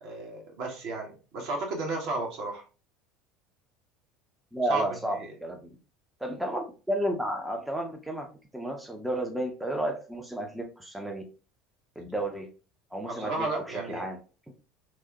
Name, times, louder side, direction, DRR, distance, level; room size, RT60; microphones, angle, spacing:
voice 1, 0.0-2.6 4.7-4.8 5.2-5.3 13.1-14.1, right 3 dB, 50° right, 1 dB, 0.8 m, -33 dB
voice 2, 4.5-5.7 6.2-8.3 8.5-11.2 12.0-12.5 12.9-14.2, right 1 dB, 5° right, 2 dB, 0.5 m, -32 dB
3.0 x 2.0 x 2.7 m, 0.34 s
figure-of-eight pair, 70°, 0 cm